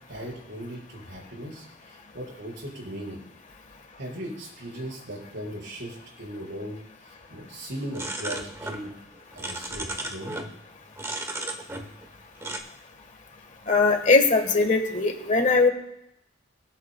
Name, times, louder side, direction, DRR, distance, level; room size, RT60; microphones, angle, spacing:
voice 1, 0.1-3.2 4.0-8.9 9.3-10.4, right 1 dB, 65° right, -3 dB, 5.0 m, -38 dB
sound 1, 7.9-8.9 9.1-10.5 11.0-12.1 12.4-12.6, right 1 dB, 15° right, 1.0 m, -34 dB
voice 2, 13.7-15.7, left 3 dB, 40° left, 4 dB, 1.4 m, -20 dB
22.5 x 8.3 x 2.3 m, 0.81 s
head